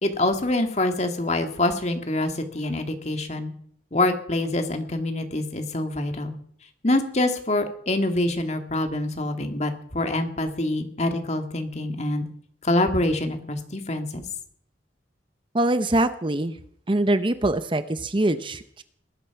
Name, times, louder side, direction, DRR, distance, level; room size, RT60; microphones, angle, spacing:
voice 1, 0.0-3.5 3.9-6.4 6.8-12.3 12.6-14.2, left 2 dB, 40° left, 6 dB, 2.0 m, -25 dB
voice 2, 15.5-16.6 16.9-18.8, right 1 dB, 25° right, 12 dB, 0.7 m, -23 dB
20.0 x 11.5 x 5.9 m, 0.63 s
head